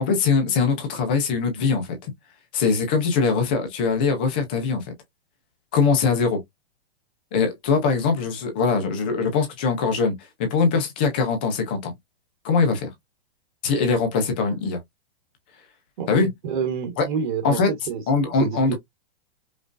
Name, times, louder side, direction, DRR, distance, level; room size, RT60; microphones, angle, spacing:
voice 1, 0.0-2.1 2.5-4.9 5.7-6.4 7.3-11.9 12.4-12.9 13.6-14.8 16.1-16.3 17.0-17.1 17.4-17.7 18.1-18.7, left 5 dB, 10° left, 0.3 m, -22 dB
voice 2, 16.4-18.0 18.4-18.8, right 6 dB, 55° right, 1.3 m, -27 dB
5.1 x 2.3 x 2.4 m
hypercardioid pair, 165°, 30 cm